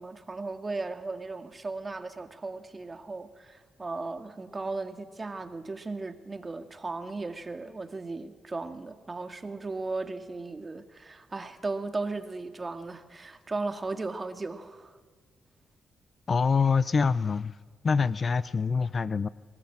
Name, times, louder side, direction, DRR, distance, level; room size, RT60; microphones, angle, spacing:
voice 1, 0.0-15.0, right 3 dB, 30° right, 7 dB, 2.2 m, -36 dB
voice 2, 16.3-19.3, left 5 dB, 45° left, 17 dB, 0.6 m, -25 dB
24.0 x 20.0 x 8.9 m, 1.5 s
cardioid pair, 80°, 0 cm